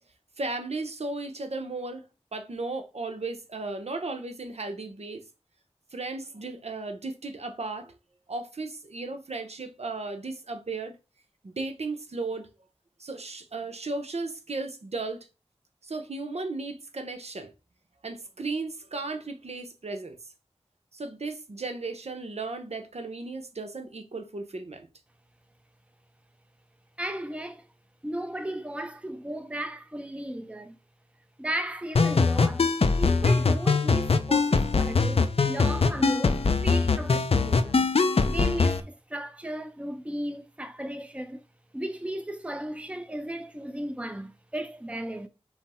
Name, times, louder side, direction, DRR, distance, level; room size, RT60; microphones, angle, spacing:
voice 1, 0.4-2.0 2.3-5.2 5.9-7.9 8.3-11.0 11.4-12.5 13.0-15.3 15.8-17.5 18.0-20.2 20.9-24.9, right 3 dB, 80° right, 0.8 m, -35 dB
voice 2, 27.0-27.7 28.0-30.8 31.4-32.7 33.0-37.9 38.3-41.4 41.7-45.3, right 1 dB, 10° right, 0.6 m, -35 dB
sound 1, 31.9-38.8, left 4 dB, 65° left, 0.5 m, -23 dB
5.7 x 2.1 x 4.2 m
wide cardioid pair, 55°, 11 cm